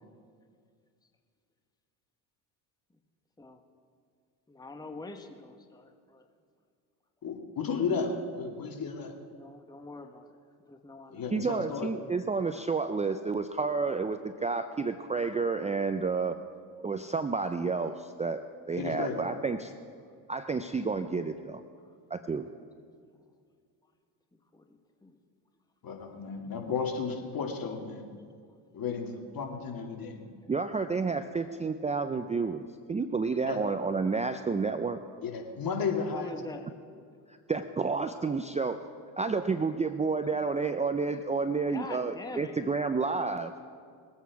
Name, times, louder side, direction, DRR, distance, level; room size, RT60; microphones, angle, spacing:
voice 1, 4.5-6.2 9.3-10.4 10.6-11.3 21.7-21.8 24.5-25.2 36.1-36.7 41.7-42.6, left 2 dB, 10° left, 5 dB, 1.2 m, -44 dB
voice 2, 7.2-9.1 11.1-11.9 18.8-19.2 25.8-28.0 28.7-30.3 33.5-33.6 35.2-36.3, left 5 dB, 45° left, 3 dB, 2.3 m, -33 dB
voice 3, 11.3-16.4 16.8-18.4 18.7-19.7 20.3-21.6 22.1-22.5 30.5-35.0 37.5-38.8 39.2-43.5, right 4 dB, 15° right, 9 dB, 0.5 m, -30 dB
21.5 x 8.4 x 4.8 m, 2.1 s
supercardioid pair, 75°, 48 cm